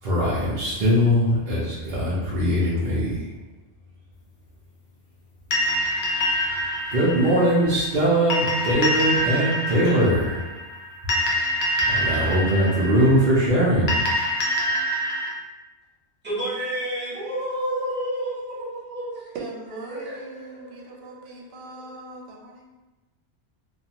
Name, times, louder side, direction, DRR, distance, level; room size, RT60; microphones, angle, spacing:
voice 1, 0.0-3.3 6.9-10.5 11.9-14.1, equal, 50° right, -9 dB, 0.7 m, -21 dB
sound 1, 5.5-15.3, equal, 65° left, 0.8 m, -26 dB
voice 2, 16.2-19.3 19.8-21.3, right 1 dB, 10° right, -9 dB, 0.8 m, -31 dB
voice 3, 19.3-22.7, right 3 dB, 85° right, -1 dB, 0.9 m, -40 dB
2.5 x 2.4 x 2.8 m, 1.1 s
omnidirectional pair, 1.2 m